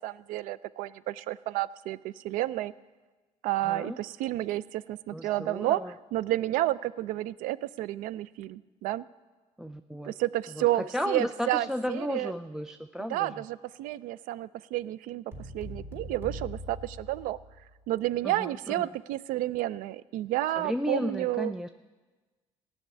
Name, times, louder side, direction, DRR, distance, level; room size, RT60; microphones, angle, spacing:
voice 1, 0.0-2.7 3.4-9.0 10.0-12.3 13.1-15.2 15.5-17.4 17.9-21.5, right 15 dB, 75° right, 19 dB, 0.4 m, -31 dB
voice 2, 3.6-4.0 5.1-5.9 9.6-10.1 10.6-13.3 18.2-18.9 20.6-21.7, equal, 5° right, 8 dB, 0.4 m, -34 dB
sound 1, 15.3-17.8, equal, 20° right, 3.6 m, -42 dB
15.0 x 6.5 x 9.7 m, 1.3 s
cardioid pair, 105°, 14 cm